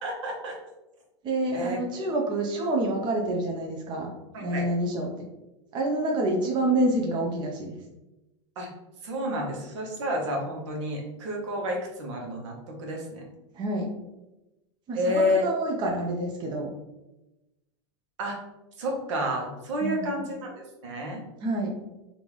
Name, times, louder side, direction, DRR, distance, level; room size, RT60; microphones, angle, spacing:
voice 1, 0.0-0.5 1.5-1.8 4.3-4.6 8.6-8.7 9.0-13.3 14.9-15.5 18.2-18.4 18.8-21.2, equal, 75° right, 0 dB, 1.0 m, -30 dB
voice 2, 1.2-4.1 4.4-5.1 5.7-7.8 13.5-13.9 14.9-16.7 19.8-20.3 21.4-21.7, right 1 dB, 30° right, 0 dB, 0.6 m, -27 dB
3.4 x 2.6 x 3.0 m, 1.0 s
supercardioid pair, 125°, 15 cm